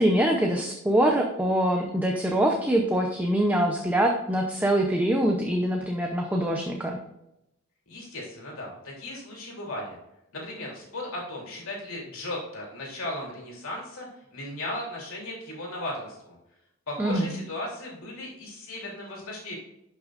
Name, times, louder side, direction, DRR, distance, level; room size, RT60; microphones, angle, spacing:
voice 1, 0.0-7.0 17.0-17.3, right 1 dB, 10° right, 1 dB, 0.6 m, -24 dB
voice 2, 7.9-10.0 10.3-16.4 16.9-19.5, left 1 dB, 70° left, -3 dB, 3.1 m, -36 dB
11.5 x 6.1 x 2.5 m, 0.86 s
head